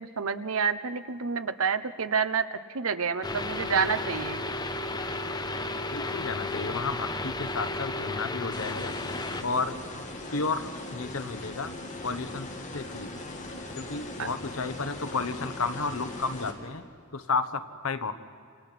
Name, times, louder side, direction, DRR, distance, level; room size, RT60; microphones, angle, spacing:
voice 1, 0.0-4.4 14.2-14.3, right 6 dB, 70° right, 12 dB, 0.9 m, -28 dB
sound 1, 3.2-9.4, left 2 dB, 20° left, 1.1 m, -33 dB
voice 2, 5.9-8.9 9.4-9.8 10.3-11.7 12.0-12.5 12.7-13.1 13.8-16.8 17.1-18.1, left 4 dB, 70° left, 10 dB, 1.2 m, -32 dB
sound 2, 8.5-16.5, left 1 dB, 35° left, 2.9 m, -40 dB
28.5 x 27.0 x 6.0 m, 2.2 s
head